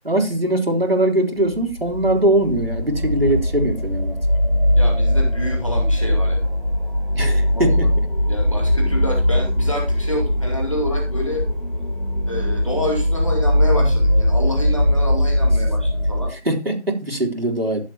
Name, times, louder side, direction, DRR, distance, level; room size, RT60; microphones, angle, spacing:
voice 1, 0.0-4.2 7.1-7.9 16.3-17.8, right 1 dB, 60° right, 2 dB, 3.7 m, -21 dB
sound 1, 1.5-16.3, left 1 dB, 55° left, 2.2 m, -20 dB
voice 2, 4.7-6.5 7.5-7.8 8.3-11.4 12.2-16.3, equal, 30° left, 1 dB, 2.3 m, -28 dB
14.5 x 7.9 x 3.0 m, 0.30 s
figure-of-eight pair, 175°, 33 cm